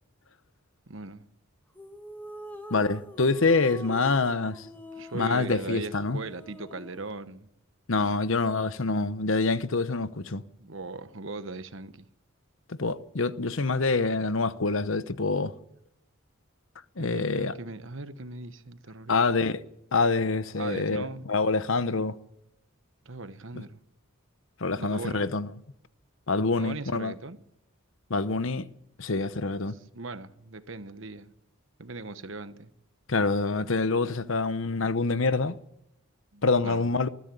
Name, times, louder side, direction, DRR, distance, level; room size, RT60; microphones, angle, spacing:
voice 1, 0.9-1.3 4.9-7.5 10.6-12.1 17.0-19.2 20.6-21.3 23.0-23.8 24.8-25.3 26.6-27.4 29.7-31.3 31.8-32.7 36.3-36.9, right 3 dB, 60° right, 1.2 m, -39 dB
sound 1, 1.8-7.1, equal, 10° left, 1.9 m, -45 dB
voice 2, 2.7-4.7 5.1-6.2 7.9-10.4 12.7-15.5 17.0-17.5 19.1-19.6 19.9-22.2 23.5-23.6 24.6-25.5 26.3-27.1 28.1-28.7 29.0-29.8 33.1-35.6 36.4-37.1, left 3 dB, 65° left, 0.9 m, -26 dB
20.0 x 14.0 x 9.4 m
head